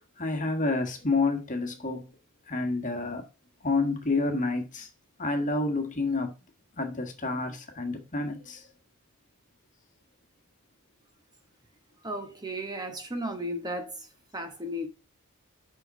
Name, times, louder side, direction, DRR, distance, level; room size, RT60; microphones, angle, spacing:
voice 1, 0.2-2.1 2.5-3.2 3.6-4.9 5.2-6.3 6.8-8.7, left 3 dB, 35° left, 1.5 m, -29 dB
voice 2, 12.0-14.1 14.3-14.9, equal, 20° right, 1.1 m, -34 dB
5.9 x 5.6 x 5.3 m
head